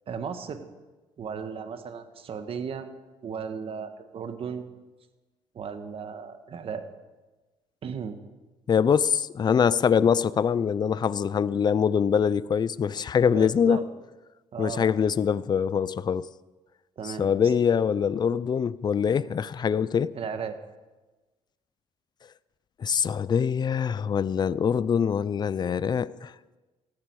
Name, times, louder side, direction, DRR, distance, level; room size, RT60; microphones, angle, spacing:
voice 1, 0.1-0.7 1.2-2.9 3.2-4.7 5.5-6.8 7.8-8.2 13.3-13.8 14.5-14.9 17.0-17.3 20.1-20.6, right 6 dB, 50° right, 1.6 m, -35 dB
voice 2, 8.7-13.8 14.6-16.3 17.2-20.1 22.8-26.3, left 7 dB, 40° left, 0.5 m, -24 dB
17.5 x 14.0 x 4.8 m
cardioid pair, 90°, 12 cm